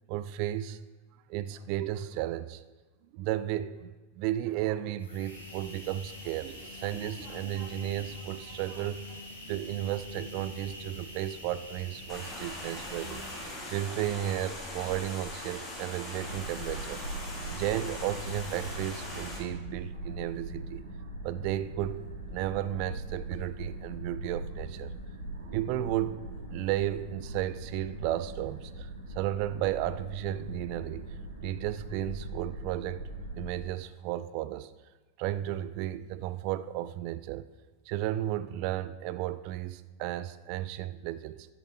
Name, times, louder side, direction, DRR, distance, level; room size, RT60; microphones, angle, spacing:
voice 1, 0.1-0.9 1.3-2.6 3.1-9.0 9.4-13.2 13.7-17.0 17.5-20.8 21.2-24.9 25.5-26.2 26.5-31.1 31.4-33.1 33.4-34.7 35.2-37.5 37.9-41.5, right 13 dB, 45° right, 14 dB, 0.4 m, -34 dB
sound 1, 5.0-14.3, left 1 dB, 70° left, 2.6 m, -45 dB
sound 2, 12.1-19.4, left 1 dB, 20° left, 3.2 m, -41 dB
sound 3, 16.1-33.6, right 1 dB, 70° right, 2.4 m, -41 dB
13.5 x 7.3 x 4.1 m, 1.3 s
figure-of-eight pair, 90°, 0 cm